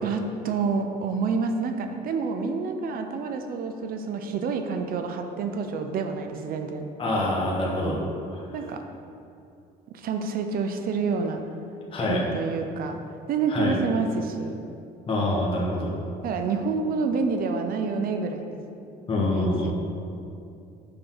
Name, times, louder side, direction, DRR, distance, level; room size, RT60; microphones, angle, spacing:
voice 1, 0.0-6.9 8.5-8.8 9.9-11.4 12.0-13.0 13.3-14.6 16.2-18.6 19.2-19.7, right 4 dB, 60° right, 6 dB, 0.6 m, -28 dB
voice 2, 7.0-8.0 8.3-8.4 11.9-12.2 13.5-13.7 15.1-15.9 19.1-19.7, left 1 dB, 30° left, -4 dB, 1.4 m, -25 dB
6.9 x 5.7 x 3.8 m, 2.6 s
cardioid pair, 110°, 17 cm